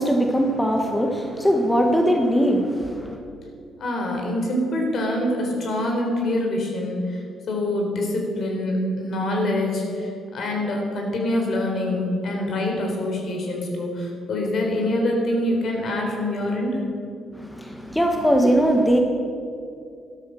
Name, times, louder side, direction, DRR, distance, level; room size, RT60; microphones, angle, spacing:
voice 1, 0.0-3.2 17.3-19.0, equal, 10° left, 3 dB, 1.4 m, -20 dB
voice 2, 3.8-7.2 7.5-16.8, left 1 dB, 60° left, 1 dB, 3.9 m, -25 dB
13.0 x 12.5 x 6.3 m, 2.4 s
cardioid pair, 90°, 0 cm